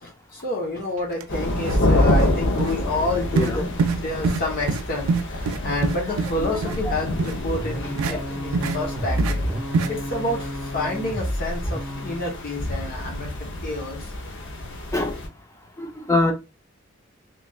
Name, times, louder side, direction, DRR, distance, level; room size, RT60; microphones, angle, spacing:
voice 1, 0.0-3.6 4.0-9.4 9.9-14.1, left 2 dB, 45° left, 0.9 m, -29 dB
sound 1, 1.1-1.2 1.6-1.8 2.1-2.3 2.6-2.7 3.4-3.5 3.8-4.0 4.2-4.4 4.7-4.8 5.1-6.3 6.6-6.8 7.2-7.3 8.0-8.1 8.5-8.8 9.2-9.3 9.7-9.9, right 4 dB, 90° right, 0.4 m, -24 dB
sound 2, 1.3-15.3, left 1 dB, 65° left, 0.7 m, -28 dB
voice 2, 3.3-3.7 6.4-6.9 8.1-8.2 14.9-15.2 15.8-16.3, left 2 dB, 15° left, 0.6 m, -25 dB
sound 3, 7.4-12.3, equal, 15° right, 1.2 m, -30 dB
3.2 x 3.0 x 2.3 m
head